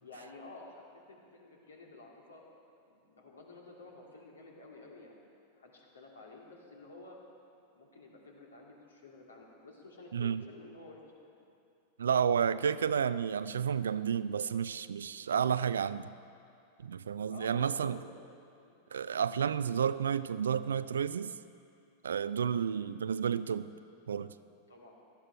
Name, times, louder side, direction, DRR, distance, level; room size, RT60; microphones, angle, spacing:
voice 1, 0.0-2.5 2.9-5.3 5.6-7.2 7.7-11.4 12.8-12.9 17.3-18.2 18.6-18.8 22.5-22.9 24.7-24.9, left 2 dB, 70° left, -1 dB, 2.5 m, -52 dB
voice 2, 10.1-10.4 12.0-16.1 16.8-18.0 18.9-21.4 22.0-23.7 24.1-24.3, right 7 dB, 70° right, 15 dB, 0.4 m, -31 dB
17.5 x 13.0 x 4.6 m, 2.5 s
figure-of-eight pair, 90°, 0 cm